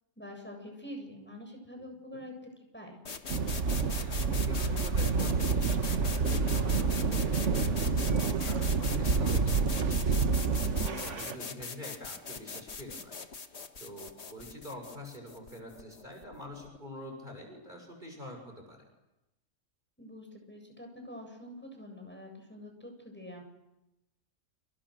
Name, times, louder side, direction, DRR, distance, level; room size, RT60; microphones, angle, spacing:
voice 1, 0.2-2.3 2.7-3.0 10.5-11.1 20.0-23.4, left 1 dB, 5° left, 2 dB, 7.7 m, -46 dB
sound 1, 3.0-16.8, left 4 dB, 50° left, 1.8 m, -41 dB
sound 2, 3.3-11.4, right 5 dB, 55° right, 1.6 m, -28 dB
voice 2, 3.9-10.1 10.8-13.1 13.8-18.8, equal, 30° right, 2 dB, 6.8 m, -46 dB
29.5 x 28.0 x 6.5 m, 0.92 s
omnidirectional pair, 1.5 m